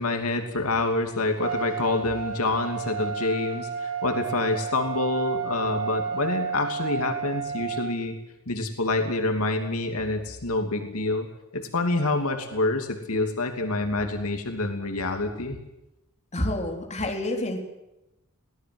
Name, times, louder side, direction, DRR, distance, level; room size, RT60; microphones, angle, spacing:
voice 1, 0.0-8.2 8.5-11.3 11.5-15.6, left 2 dB, 80° left, 5 dB, 2.8 m, -27 dB
Trumpet, 1.4-7.9, right 6 dB, 85° right, 6.6 m, -32 dB
voice 2, 16.3-17.6, left 1 dB, 30° left, 1 dB, 3.8 m, -28 dB
24.0 x 18.0 x 7.9 m, 0.95 s
head